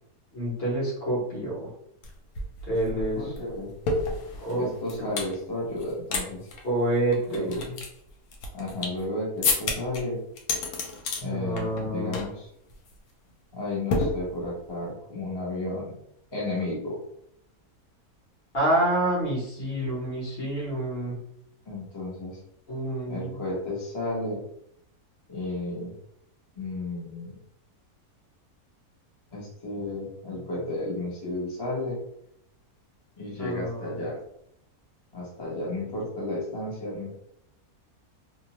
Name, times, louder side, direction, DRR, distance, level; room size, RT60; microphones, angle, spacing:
voice 1, 0.3-1.7 2.7-3.3 4.4-5.1 6.6-7.5 11.2-12.1 18.5-21.2 22.7-23.4 33.4-34.1, right 1 dB, 45° left, -5 dB, 1.1 m, -28 dB
sound 1, 2.0-2.1 2.4-5.3 5.8-6.2 6.5-6.6 7.1-9.0 9.4-10.0 10.4-11.2 11.6-11.9 12.1-12.4 12.7-12.9 13.9-14.7, left 3 dB, 90° left, 1.1 m, -30 dB
voice 2, 2.9-3.7 4.6-6.5 7.3-7.8 8.5-10.2 11.2-12.5 13.5-15.9 16.3-17.0 21.7-22.4 23.1-24.4 25.3-25.9 26.6-27.4 29.3-32.0 33.2-34.2 35.1-37.2, left 2 dB, 25° left, -6 dB, 0.5 m, -33 dB
2.7 x 2.1 x 2.8 m, 0.74 s
omnidirectional pair, 1.6 m